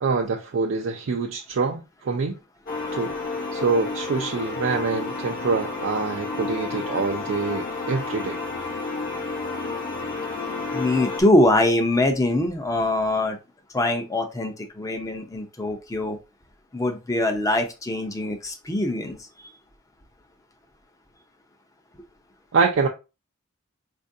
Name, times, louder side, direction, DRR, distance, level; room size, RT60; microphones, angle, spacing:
voice 1, 0.0-2.4 2.9-3.1 3.5-8.4 22.5-22.9, right 4 dB, 75° right, 0.4 m, -25 dB
sound 1, 2.7-11.2, left 3 dB, 45° left, 0.9 m, -31 dB
voice 2, 10.7-13.4 13.7-16.2 16.7-19.3, left 1 dB, 15° left, 0.5 m, -23 dB
4.3 x 2.5 x 2.6 m
head